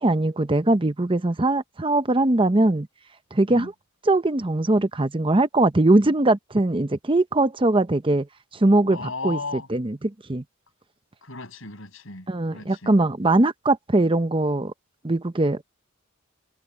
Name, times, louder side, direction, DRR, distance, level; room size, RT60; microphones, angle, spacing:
voice 1, 0.0-2.9 3.3-3.7 4.1-8.3 8.5-10.4 12.3-14.7 15.0-15.6, right 2 dB, 25° right, 0.7 m, -21 dB
voice 2, 8.9-9.7 11.2-12.9, left 3 dB, 70° left, 7.3 m, -35 dB
head